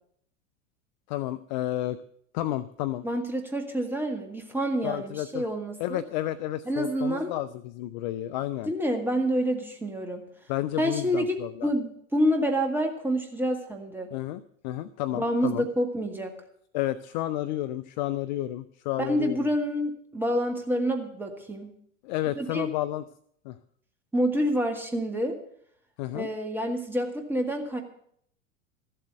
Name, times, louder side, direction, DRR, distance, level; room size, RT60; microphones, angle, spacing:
voice 1, 1.1-2.0 2.3-3.0 4.8-5.4 5.8-8.7 10.5-11.7 14.1-15.7 16.7-19.4 22.0-23.0 23.4-23.5 26.0-26.3, left 14 dB, 35° left, 14 dB, 0.4 m, -31 dB
voice 2, 3.0-6.0 6.7-7.3 8.7-10.2 10.8-14.1 15.1-16.3 19.0-21.7 22.4-22.7 24.1-25.4 26.1-27.8, equal, 5° right, 4 dB, 1.8 m, -28 dB
14.0 x 7.7 x 8.0 m, 0.67 s
figure-of-eight pair, 90°, 40 cm